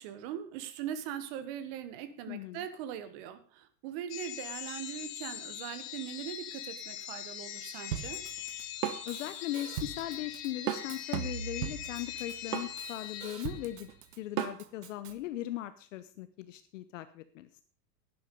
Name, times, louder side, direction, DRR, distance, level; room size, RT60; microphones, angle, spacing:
voice 1, 0.0-8.2, right 10 dB, 35° right, 12 dB, 1.5 m, -41 dB
voice 2, 2.3-2.6 9.1-13.9 14.2-17.5, left 14 dB, 50° left, 12 dB, 0.8 m, -39 dB
sound 1, 4.1-13.9, left 11 dB, 25° left, 1.2 m, -42 dB
Drum kit, 7.9-15.1, right 10 dB, 70° right, 1.4 m, -37 dB
11.0 x 11.0 x 5.3 m, 0.40 s
supercardioid pair, 165°, 49 cm